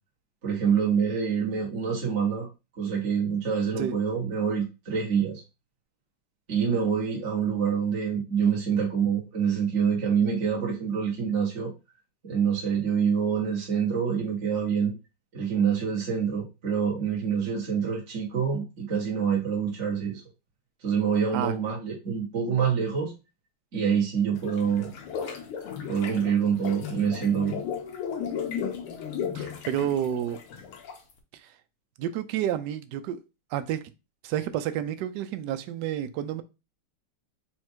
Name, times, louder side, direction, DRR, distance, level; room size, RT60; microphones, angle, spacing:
voice 1, 0.4-2.5 2.8-5.4 6.5-11.7 12.2-14.9 15.3-20.2 20.8-23.1 23.7-24.9 25.9-27.6, right 7 dB, 40° right, 1.4 m, -26 dB
sound 1, 24.4-31.1, left 7 dB, 90° left, 1.7 m, -35 dB
voice 2, 29.3-30.4 31.3-31.5 32.0-33.2 33.5-33.8 34.2-36.4, right 10 dB, 75° right, 1.0 m, -30 dB
4.4 x 2.4 x 4.4 m
omnidirectional pair, 2.3 m